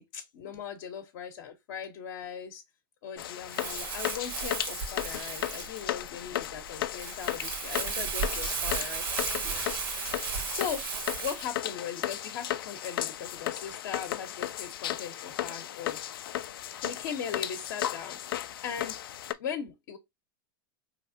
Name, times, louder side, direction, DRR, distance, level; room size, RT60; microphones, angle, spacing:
voice 1, 0.0-2.6 3.0-9.6 10.0-10.1 10.5-10.9 11.2-16.0 16.8-19.0 19.4-20.0, left 8 dB, 60° left, 0.8 m, -39 dB
sound 1, 3.2-19.3, left 12 dB, 80° left, 0.4 m, -35 dB
Crumpling crinkling, 3.5-11.5, right 6 dB, 75° right, 1.2 m, -35 dB
4.1 x 3.1 x 2.6 m
hypercardioid pair, 110°, 12 cm